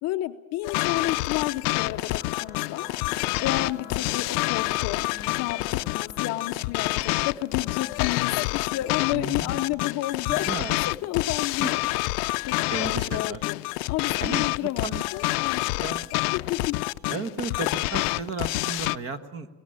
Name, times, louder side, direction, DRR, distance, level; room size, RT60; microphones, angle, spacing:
voice 1, 0.0-5.0 5.3-10.5 10.8-11.8 12.5-13.6 13.9-15.7 16.1-16.8, left 15 dB, 35° left, 6 dB, 0.7 m, -31 dB
sound 1, 0.6-19.0, left 23 dB, 70° left, 0.6 m, -27 dB
sound 2, 1.2-12.2, left 8 dB, 15° left, 1.3 m, -47 dB
voice 2, 9.1-9.7 10.3-10.7 11.6-11.8 12.7-13.4 14.2-15.0 15.8-16.1 17.1-19.5, right 4 dB, 30° right, 11 dB, 1.2 m, -34 dB
21.5 x 18.0 x 8.7 m, 1.2 s
cardioid pair, 170°, 48 cm